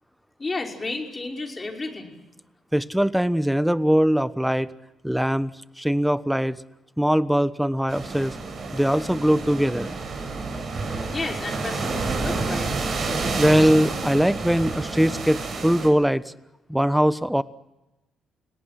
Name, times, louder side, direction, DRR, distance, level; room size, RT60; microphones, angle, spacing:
voice 1, 0.4-2.2 11.1-12.7, left 3 dB, 30° left, 2 dB, 5.6 m, -32 dB
voice 2, 2.7-4.7 5.0-6.6 7.0-8.4 8.7-10.0 13.3-16.3 16.7-17.4, equal, 5° right, 16 dB, 1.1 m, -21 dB
sound 1, 7.9-15.9, right 3 dB, 50° right, 6.8 m, -29 dB
29.5 x 18.0 x 7.7 m, 0.97 s
hypercardioid pair, 50°, 0 cm